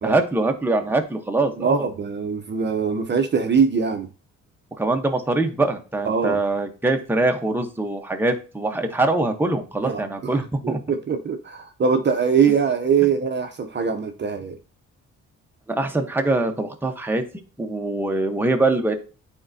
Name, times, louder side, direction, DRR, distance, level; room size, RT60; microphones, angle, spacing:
voice 1, 0.0-1.8 4.8-10.8 15.7-17.2 17.6-18.9, right 2 dB, 5° right, 4 dB, 0.9 m, -23 dB
voice 2, 1.6-4.1 6.1-6.4 9.8-10.3 10.6-14.6, right 6 dB, 35° right, 6 dB, 0.7 m, -22 dB
8.6 x 4.4 x 2.7 m, 0.36 s
cardioid pair, 90°, 30 cm